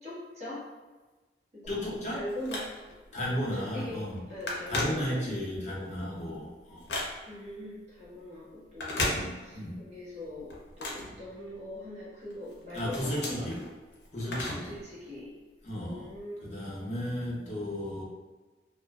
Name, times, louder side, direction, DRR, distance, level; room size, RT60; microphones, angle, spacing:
voice 1, 0.0-0.6 1.5-2.7 3.5-5.4 7.3-9.1 9.4-13.5 14.3-15.4 15.7-16.6, left 1 dB, 40° right, -8 dB, 0.9 m, -41 dB
Telephone, 1.6-3.1 3.6-3.8 4.0-5.5 6.0-7.5 8.7-9.8 10.1-11.8 12.3-14.8 15.1-15.2 16.1-16.2, left 2 dB, 75° left, 0.6 m, -36 dB
voice 2, 1.7-2.2 3.1-4.2 4.7-6.9 7.1-7.2 9.1-9.7 12.7-13.6 14.1-14.7 15.6-16.1 16.4-18.0, equal, 40° left, -5 dB, 0.7 m, -34 dB
2.5 x 2.3 x 2.3 m, 1.3 s
head